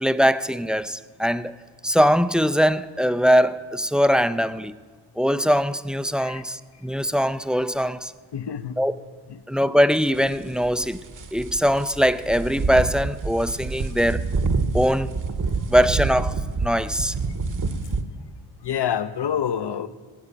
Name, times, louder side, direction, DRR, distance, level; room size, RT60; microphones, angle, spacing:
voice 1, 0.0-1.5 1.8-4.7 5.2-8.1 8.8-8.9 9.5-11.0 11.3-14.2 14.7-15.1 15.7-16.4 16.6-17.1, equal, ahead, 0.4 m, -21 dB
voice 2, 8.3-8.8 9.3-9.4 18.6-19.9, left 9 dB, 55° left, 0.8 m, -27 dB
sound 1, 10.1-18.0, right 4 dB, 40° right, 1.0 m, -27 dB
16.0 x 7.7 x 8.5 m
cardioid pair, 75°, 49 cm